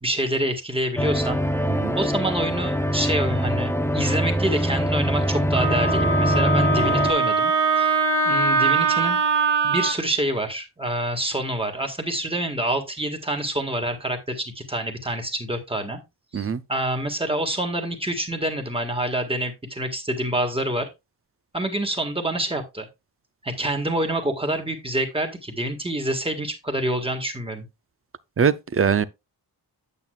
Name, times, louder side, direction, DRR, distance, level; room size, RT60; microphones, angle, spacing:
voice 1, 0.0-1.4 1.9-7.9 8.2-9.2 9.6-16.0 16.3-20.9 21.5-22.9 23.4-27.7, right 1 dB, 15° right, 1.6 m, -27 dB
sound 1, 1.0-7.1, equal, 5° left, 0.6 m, -23 dB
Wind instrument woodwind instrument, 5.5-9.9, right 3 dB, 75° right, 1.2 m, -21 dB
voice 2, 28.4-29.1, right 6 dB, 35° right, 0.5 m, -21 dB
8.9 x 8.4 x 2.3 m
wide cardioid pair, 165°, 41 cm